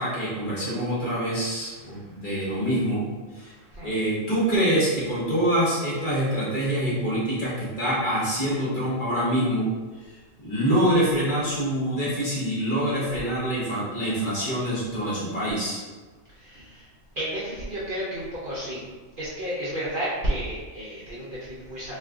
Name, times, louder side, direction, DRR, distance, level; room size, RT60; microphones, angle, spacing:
voice 1, 0.0-3.0 3.3-3.5 3.8-9.7 10.4-15.8, right 1 dB, 45° left, -8 dB, 0.9 m, -25 dB
voice 2, 3.4-3.9 16.3-16.9 17.1-18.8 19.2-22.0, right 1 dB, 50° right, -8 dB, 0.7 m, -32 dB
2.5 x 2.4 x 3.5 m, 1.3 s
omnidirectional pair, 1.4 m